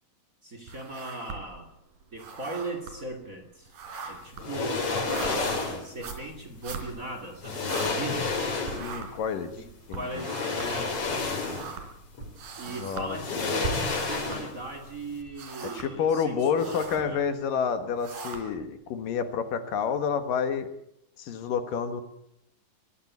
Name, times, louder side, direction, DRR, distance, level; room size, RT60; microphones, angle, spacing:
voice 1, 0.4-1.7 2.1-3.7 4.0-8.3 9.6-11.0 12.6-17.3, right 2 dB, 25° right, 5 dB, 2.6 m, -38 dB
sound 1, 0.7-1.7 2.0-8.4 8.6-14.9 15.2-16.0 16.4-17.1 17.7-18.7, right 4 dB, 65° right, 5.1 m, -41 dB
sound 2, 4.4-5.9 7.0-7.1 7.4-9.0 10.1-11.8 12.2-12.3 13.1-14.7 15.0-15.1, left 4 dB, 40° left, 4.0 m, -30 dB
voice 2, 8.8-9.5 9.9-10.3 12.8-13.4 15.7-20.7 21.2-22.0, left 6 dB, 70° left, 9 dB, 3.1 m, -29 dB
23.0 x 16.0 x 9.5 m, 0.77 s
omnidirectional pair, 4.1 m